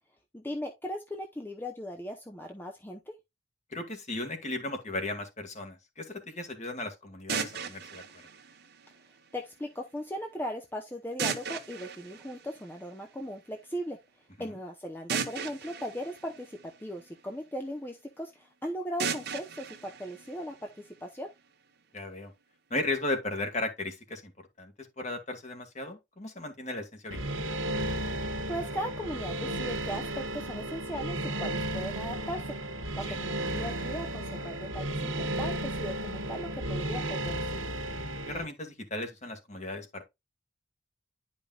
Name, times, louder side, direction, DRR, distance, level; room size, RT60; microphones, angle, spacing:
voice 1, 0.3-3.1 9.3-14.0 14.4-21.3 28.5-32.6 33.0-37.4, equal, 10° left, 0.7 m, -38 dB
voice 2, 3.7-8.2 14.4-14.6 21.9-22.3 22.7-24.3 24.6-27.4 33.0-33.2 38.3-40.0, left 2 dB, 35° left, 1.8 m, -36 dB
sound 1, 7.3-9.3 11.2-13.2 15.1-17.3 19.0-21.0, right 6 dB, 55° right, 1.1 m, -37 dB
sound 2, 27.1-38.4, right 1 dB, 85° right, 1.4 m, -34 dB
10.5 x 5.2 x 2.3 m
head